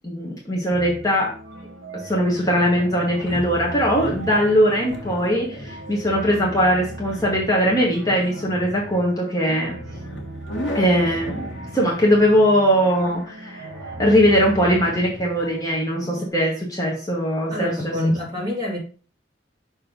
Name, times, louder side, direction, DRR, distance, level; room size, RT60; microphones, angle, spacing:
voice 1, 0.0-1.3 1.9-9.7 10.7-13.7 14.0-18.0, equal, 20° left, -4 dB, 1.4 m, -20 dB
sound 1, 0.7-16.3, right 1 dB, 75° right, 1.4 m, -37 dB
sound 2, 2.6-15.3, left 1 dB, 70° left, 1.4 m, -38 dB
voice 2, 17.5-18.8, left 1 dB, 25° right, -4 dB, 2.5 m, -25 dB
6.2 x 3.3 x 5.2 m, 0.39 s
head